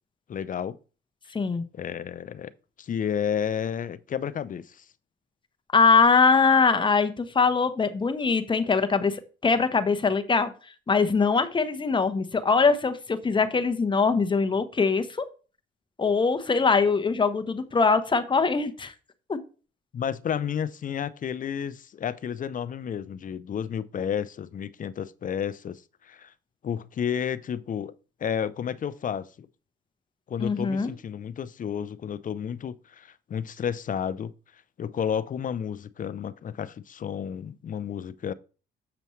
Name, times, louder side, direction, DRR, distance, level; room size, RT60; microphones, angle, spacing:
voice 1, 0.3-0.8 1.7-2.5 2.8-4.8 19.9-26.3 26.6-27.9 28.2-29.5 30.3-34.3 34.8-38.3, left 8 dB, 40° left, 0.5 m, -31 dB
voice 2, 1.3-1.6 5.7-10.5 10.9-15.2 16.0-18.9 19.3-19.4 30.4-30.9, left 4 dB, 25° left, 0.9 m, -22 dB
7.0 x 6.7 x 3.1 m
cardioid pair, 90°, 20 cm